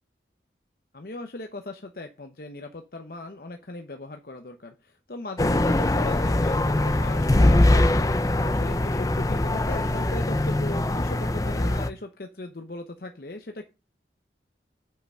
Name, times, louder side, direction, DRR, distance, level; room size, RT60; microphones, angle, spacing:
voice 1, 0.9-13.6, left 2 dB, 55° left, 5 dB, 0.8 m, -38 dB
sound 1, 5.4-11.9, left 1 dB, 20° left, 0.5 m, -22 dB
8.0 x 5.8 x 6.4 m, 0.29 s
head